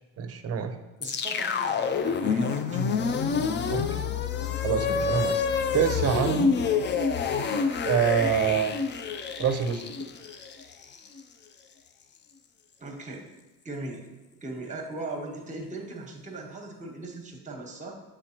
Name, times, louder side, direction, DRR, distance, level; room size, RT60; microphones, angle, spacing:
voice 1, 0.2-0.7 3.7-4.0 4.6-5.4 5.7-6.5 7.8-8.7 9.4-9.8, right 8 dB, 35° right, 8 dB, 0.7 m, -26 dB
sound 1, 1.0-11.2, left 5 dB, 30° left, 0.4 m, -27 dB
voice 2, 1.0-3.0 12.8-13.3 13.6-14.1 14.4-18.0, right 2 dB, 20° right, 2 dB, 1.2 m, -39 dB
7.4 x 4.9 x 2.9 m, 1.1 s
cardioid pair, 105°, 40 cm